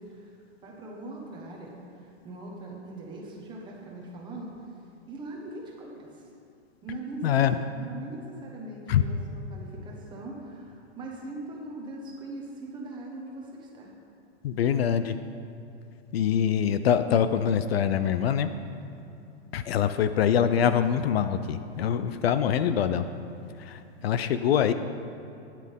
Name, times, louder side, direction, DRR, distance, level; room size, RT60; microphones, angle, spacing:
voice 1, 0.0-4.7 5.1-6.3 6.8-13.9, right 2 dB, 15° right, -1 dB, 1.2 m, -41 dB
voice 2, 7.2-7.6 8.9-9.0 14.4-15.2 16.1-18.5 19.5-23.1 23.7-24.7, left 9 dB, 60° left, 11 dB, 0.6 m, -24 dB
13.0 x 10.0 x 3.6 m, 2.7 s
supercardioid pair, 165°, 34 cm